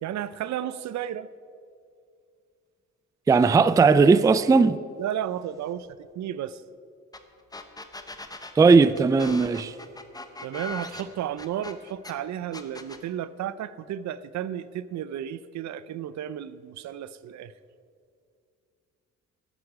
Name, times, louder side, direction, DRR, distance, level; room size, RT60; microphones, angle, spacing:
voice 1, 0.0-1.3 5.0-5.9 6.1-6.6 10.4-17.5, right 10 dB, 65° right, 0.5 m, -33 dB
voice 2, 3.3-4.8 8.6-9.7, right 4 dB, 10° right, 0.3 m, -18 dB
sound 1, 7.1-7.2 7.5-12.1 12.5-13.0, left 2 dB, 10° left, 1.0 m, -40 dB
12.5 x 9.9 x 4.8 m
cardioid pair, 75°, 30 cm